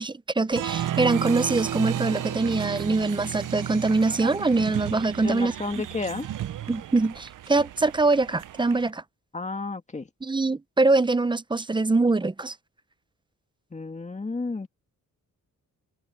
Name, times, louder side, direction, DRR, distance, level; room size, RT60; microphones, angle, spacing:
voice 1, 0.0-5.5 6.7-9.0 10.2-12.5, right 3 dB, 15° right, 0.6 m, -23 dB
Applause, 0.5-8.9, right 11 dB, 70° right, 0.8 m, -33 dB
voice 2, 5.2-6.3 9.3-10.1 13.7-14.7, left 3 dB, 20° left, 1.8 m, -32 dB
cardioid pair, 95°, 32 cm